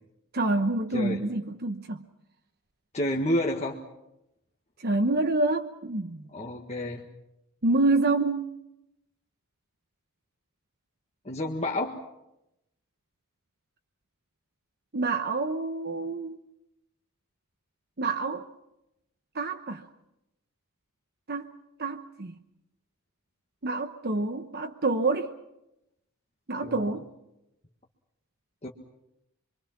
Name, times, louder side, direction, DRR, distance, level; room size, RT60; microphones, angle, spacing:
voice 1, 0.3-2.0 4.8-6.3 7.6-8.5 14.9-16.4 18.0-18.4 19.3-19.8 21.3-21.5 21.8-22.3 23.6-25.3 26.5-27.1, right 2 dB, 45° right, 1.0 m, -27 dB
voice 2, 2.9-3.8 6.3-7.1 11.3-12.0 26.6-27.0 28.6-28.7, left 1 dB, 30° left, 1.7 m, -29 dB
26.5 x 24.0 x 6.1 m
head